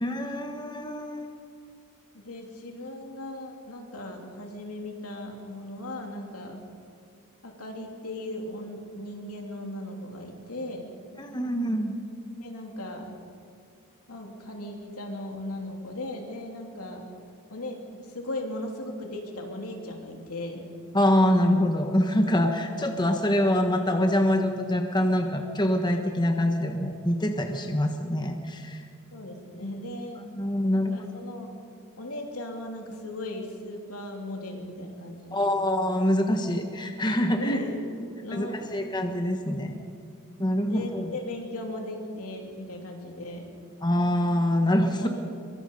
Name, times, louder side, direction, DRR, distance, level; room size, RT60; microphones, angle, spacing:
voice 1, 0.0-1.3 11.2-12.0 20.9-28.8 30.2-31.1 35.3-37.6 38.3-39.7 40.4-41.1 43.8-45.1, left 1 dB, 20° left, 4 dB, 1.3 m, -25 dB
voice 2, 2.1-6.6 7.4-10.9 12.4-13.2 14.1-17.1 17.5-20.7 22.7-23.0 29.1-30.2 30.7-31.5 32.0-35.5 37.4-38.0 38.2-38.8 40.7-43.5 45.0-45.1, left 1 dB, 75° left, 2 dB, 3.1 m, -37 dB
23.5 x 23.0 x 5.5 m, 2.3 s
head